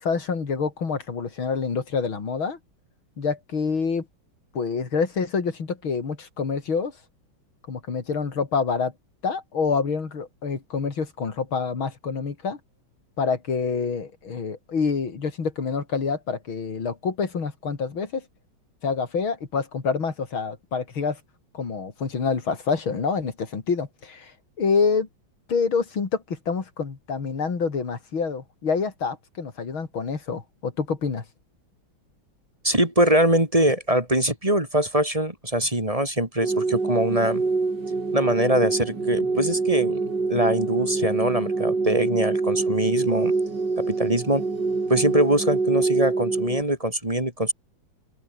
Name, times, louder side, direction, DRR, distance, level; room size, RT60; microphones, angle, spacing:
voice 1, 0.0-2.6 3.2-4.1 4.5-6.9 7.7-8.9 9.2-12.6 13.2-18.3 18.8-21.2 21.5-25.1 25.5-31.2, left 5 dB, 90° left, 3.9 m, -27 dB
voice 2, 32.6-37.4 38.1-40.0 40.3-43.3 43.8-44.4 44.9-47.5, right 1 dB, 15° right, 3.0 m, -23 dB
sound 1, 36.4-46.6, right 3 dB, 60° right, 4.7 m, -25 dB
open air
omnidirectional pair, 2.2 m